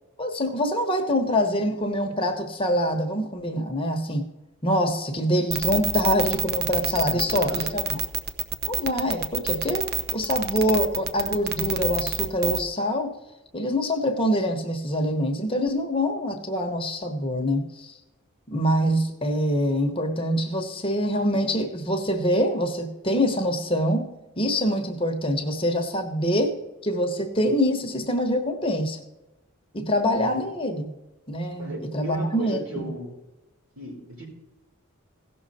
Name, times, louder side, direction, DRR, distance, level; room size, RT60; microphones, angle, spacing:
voice 1, 0.2-4.3 4.6-8.0 8.7-13.1 13.5-18.0 18.5-29.0 29.7-30.9 31.3-32.9, equal, 25° left, 4 dB, 1.1 m, -25 dB
sound 1, 5.5-12.6, right 8 dB, 45° right, 0.7 m, -27 dB
voice 2, 7.0-7.8 30.1-30.3 31.6-33.1 33.8-34.3, right 1 dB, 70° right, -2 dB, 4.3 m, -36 dB
16.5 x 6.4 x 4.2 m, 1.0 s
head